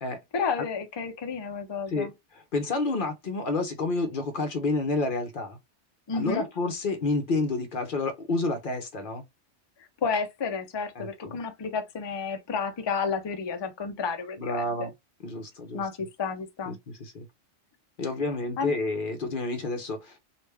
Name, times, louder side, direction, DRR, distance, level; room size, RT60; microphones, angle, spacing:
voice 1, 0.3-2.1 6.1-6.5 9.8-14.6 15.7-16.8 18.6-18.7, left 5 dB, 35° left, 0.4 m, -31 dB
voice 2, 1.9-5.6 6.1-9.2 11.0-11.4 14.4-14.9 15.2-15.8 16.7-17.3 18.0-20.2, left 3 dB, 55° left, 0.8 m, -29 dB
3.3 x 2.4 x 3.3 m
omnidirectional pair, 1.2 m